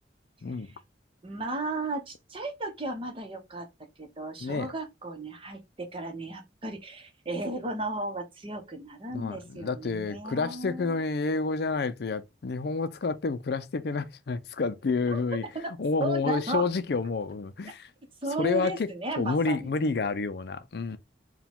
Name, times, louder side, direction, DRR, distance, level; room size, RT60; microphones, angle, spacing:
voice 1, 1.2-3.7 4.0-11.0 15.1-15.2 15.5-15.7 16.0-16.6 18.2-19.7, right 2 dB, 30° right, 0.8 m, -35 dB
voice 2, 9.1-15.4 15.8-17.9 18.4-18.9 19.2-21.0, left 4 dB, 60° left, 0.4 m, -29 dB
4.7 x 2.2 x 3.5 m
head